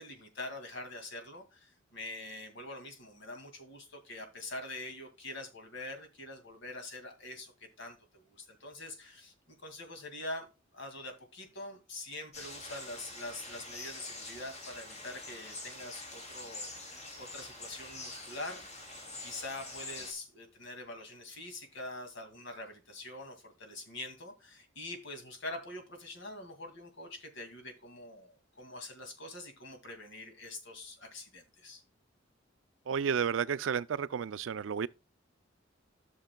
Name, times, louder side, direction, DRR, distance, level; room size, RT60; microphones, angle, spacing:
voice 1, 0.0-7.5 7.8-9.3 9.6-10.5 10.7-18.9 19.2-31.8, left 2 dB, 65° left, 2.2 m, -44 dB
sound 1, 12.3-20.1, left 2 dB, 35° left, 2.6 m, -45 dB
voice 2, 32.9-34.9, right 7 dB, 80° right, 0.4 m, -32 dB
13.0 x 6.7 x 2.2 m
head